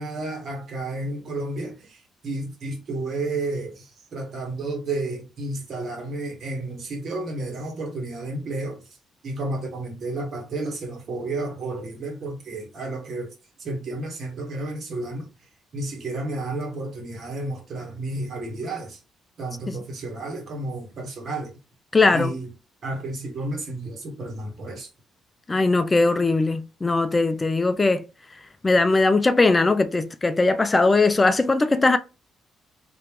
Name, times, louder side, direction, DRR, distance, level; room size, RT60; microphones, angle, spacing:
voice 1, 0.0-8.9 9.2-13.3 13.6-15.3 15.7-19.0 19.4-21.6 22.1-22.5 22.8-24.9, right 2 dB, 60° right, 1.5 m, -31 dB
voice 2, 21.9-22.3 25.5-28.0 28.6-32.0, left 3 dB, 25° left, 0.4 m, -20 dB
3.2 x 2.9 x 3.1 m
supercardioid pair, 65°, 0 cm